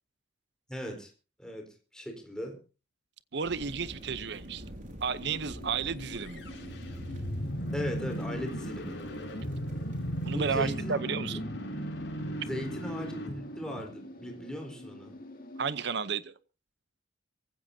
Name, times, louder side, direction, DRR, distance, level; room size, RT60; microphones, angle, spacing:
voice 1, 0.7-1.1 1.4-2.6 7.7-9.0 10.3-11.4 12.4-15.2, equal, 5° left, 2 dB, 4.1 m, -38 dB
voice 2, 3.3-4.6 5.0-6.5 10.2-11.4 15.6-16.3, right 5 dB, 60° right, 15 dB, 0.8 m, -32 dB
sound 1, 3.4-10.8, equal, 45° right, 4.9 m, -47 dB
sound 2, 5.2-15.8, left 1 dB, 50° left, 2.5 m, -49 dB
sound 3, 6.2-14.3, equal, 75° left, 5.4 m, -36 dB
24.0 x 15.5 x 2.8 m, 0.34 s
head